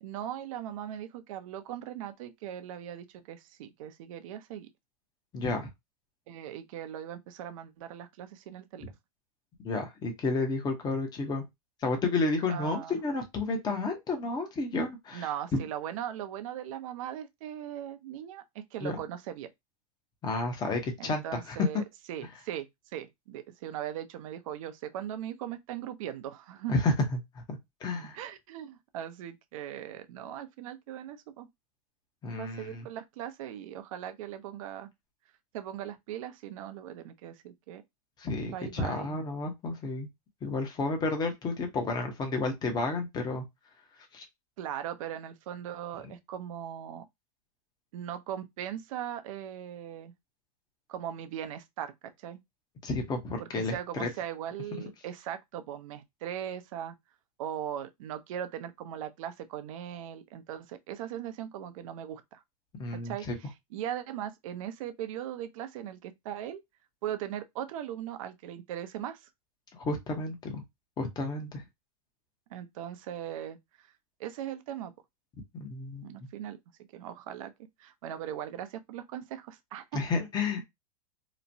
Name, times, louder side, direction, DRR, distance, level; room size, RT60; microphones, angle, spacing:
voice 1, 0.0-4.7 6.3-8.8 12.5-13.0 15.1-19.5 21.0-22.7 22.9-26.7 28.1-31.5 32.3-34.9 35.5-37.8 38.4-39.2 44.6-47.1 47.9-50.1 50.9-52.4 53.4-56.9 57.4-62.4 63.0-66.6 67.0-69.3 72.5-73.9 74.2-74.9 76.0-76.6 76.9-77.5 77.8-80.0, right 10 dB, 60° right, 0.6 m, -39 dB
voice 2, 5.3-5.7 9.6-11.4 11.8-15.7 18.8-19.0 20.2-21.7 26.7-26.9 27.3-28.2 32.2-32.9 38.2-40.1 40.4-43.4 44.1-44.2 52.8-54.1 62.8-63.4 69.7-70.6 71.0-71.6 75.5-76.1 79.9-80.6, left 3 dB, 20° left, 0.8 m, -31 dB
3.0 x 2.1 x 2.6 m
hypercardioid pair, 120°, 20 cm